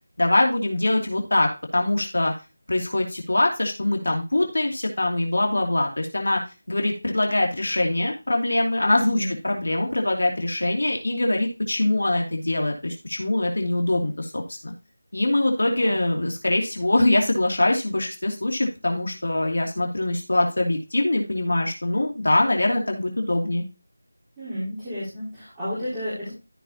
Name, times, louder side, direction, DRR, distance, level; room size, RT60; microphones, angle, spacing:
voice 1, 0.2-2.3 2.7-6.4 6.7-14.7 15.1-23.6, left 1 dB, 70° left, 1 dB, 2.9 m, -23 dB
voice 2, 8.9-9.3 15.6-16.0 24.4-26.3, equal, 5° right, -19 dB, 4.3 m, -31 dB
14.0 x 5.7 x 3.0 m, 0.28 s
figure-of-eight pair, 175°, 0 cm